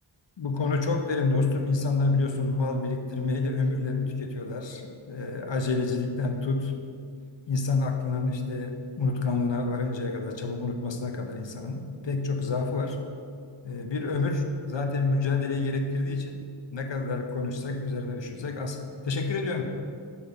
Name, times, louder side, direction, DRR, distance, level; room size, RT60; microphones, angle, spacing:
voice 1, 0.4-6.7 7.5-13.0 13.6-16.4 16.7-18.8 19.1-19.6, left 3 dB, 60° left, 5 dB, 0.8 m, -28 dB
6.8 x 4.3 x 5.0 m, 2.3 s
wide cardioid pair, 55°, 49 cm